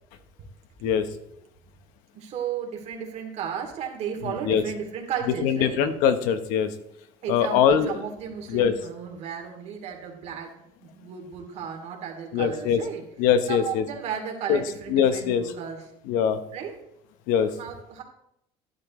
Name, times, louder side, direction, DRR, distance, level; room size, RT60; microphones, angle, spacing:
voice 1, 0.8-1.1 2.1-5.8 7.2-10.5 10.8-13.0 13.5-15.8 16.5-16.7 17.6-18.0, right 7 dB, 55° right, 2 dB, 2.9 m, -34 dB
voice 2, 4.2-4.6 5.4-6.7 7.3-8.0 8.5-8.7 12.3-12.8 13.2-13.8 14.5-14.6 14.9-15.5 16.0-16.4 17.3-17.5, left 8 dB, 80° left, 10 dB, 1.1 m, -22 dB
12.5 x 10.5 x 3.2 m, 0.78 s
cardioid pair, 130°, 14 cm